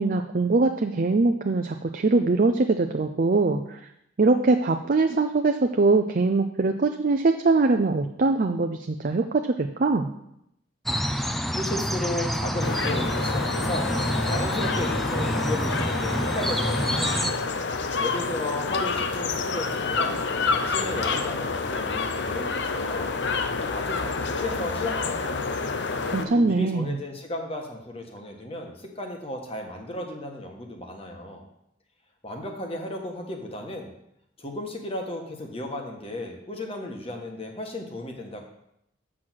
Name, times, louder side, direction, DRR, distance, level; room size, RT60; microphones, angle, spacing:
voice 1, 0.0-3.8 4.2-10.1 26.1-26.9, right 3 dB, 45° right, 5 dB, 0.5 m, -22 dB
sound 1, 10.9-17.3, equal, ahead, 0.5 m, -27 dB
voice 2, 11.5-13.9 14.2-17.3 18.0-20.2 20.5-23.2 23.7-25.5 26.1-31.4 32.2-33.9 34.4-38.4, left 1 dB, 30° left, 2 dB, 1.4 m, -34 dB
sound 2, 12.6-26.3, left 4 dB, 65° left, 0.7 m, -28 dB
7.6 x 6.3 x 6.2 m, 0.79 s
head